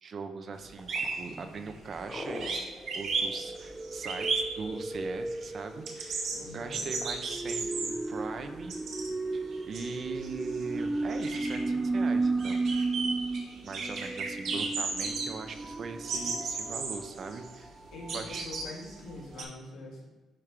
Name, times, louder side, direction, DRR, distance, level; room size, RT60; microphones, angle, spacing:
voice 1, 0.0-2.7 2.9-8.8 9.3-12.6 13.6-17.7 18.1-18.5, right 4 dB, 50° right, 8 dB, 0.7 m, -41 dB
sound 1, 0.6-0.7 0.9-2.1 2.3-5.1 5.4-9.2 9.5-19.4, right 4 dB, 70° right, 1.2 m, -35 dB
sound 2, 0.8-4.5 6.5-7.1, left 1 dB, 25° left, 1.3 m, -42 dB
sound 3, 1.4-1.6 2.7-18.6 19.1-19.2 19.4-19.5, right 3 dB, 15° right, 0.3 m, -35 dB
voice 2, 6.3-6.8 17.9-20.1, left 2 dB, 80° left, -2 dB, 1.9 m, -44 dB
10.5 x 3.6 x 3.3 m, 1.2 s
cardioid pair, 90°, 0 cm